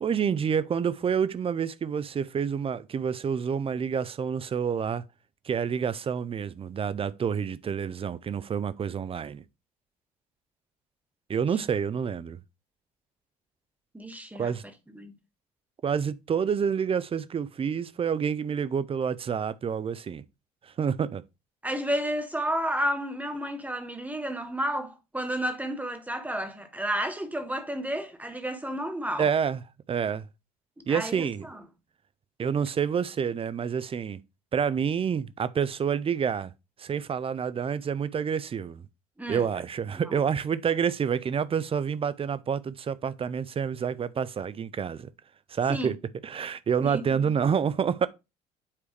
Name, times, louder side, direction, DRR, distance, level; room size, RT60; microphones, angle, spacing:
voice 1, 0.0-5.0 5.4-9.4 11.3-12.4 14.4-14.6 15.8-20.2 20.8-21.2 29.2-29.6 29.9-30.3 30.9-31.5 32.4-34.2 34.5-36.5 36.8-38.8 39.3-45.1 45.5-46.0 46.2-48.1, right 7 dB, 30° right, 0.6 m, -28 dB
voice 2, 13.9-14.5 14.9-15.1 21.6-29.3 30.9-31.6 39.2-39.5 40.0-40.2 45.7-45.9 46.8-47.3, equal, 10° right, 1.5 m, -31 dB
8.5 x 4.7 x 3.3 m
figure-of-eight pair, 55°, 19 cm